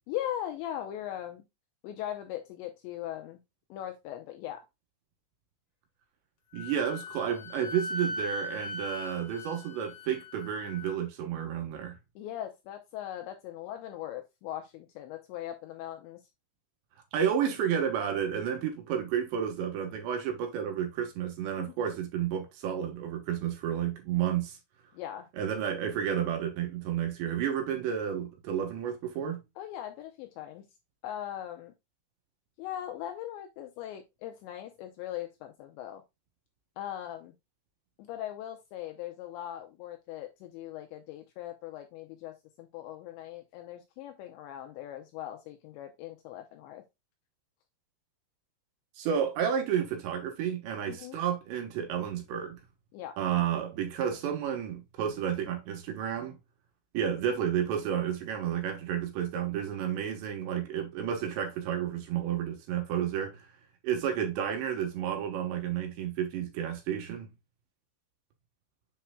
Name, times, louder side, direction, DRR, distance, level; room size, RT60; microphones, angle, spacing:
voice 1, 0.1-1.4 1.8-3.4 3.7-4.7 12.2-16.2 21.6-21.7 24.9-25.3 29.6-30.7 31.0-31.7 32.6-36.0 36.8-37.3 38.0-46.8 50.8-51.2 52.9-53.2, left 12 dB, 80° left, 2.6 m, -40 dB
Wind instrument woodwind instrument, 6.5-11.0, left 1 dB, 65° left, 2.1 m, -39 dB
voice 2, 6.5-12.0 17.1-24.6 25.4-29.4 49.0-52.6 53.2-56.4 56.9-63.5 63.8-67.3, right 9 dB, 70° right, 3.1 m, -31 dB
7.4 x 5.7 x 2.2 m
omnidirectional pair, 5.6 m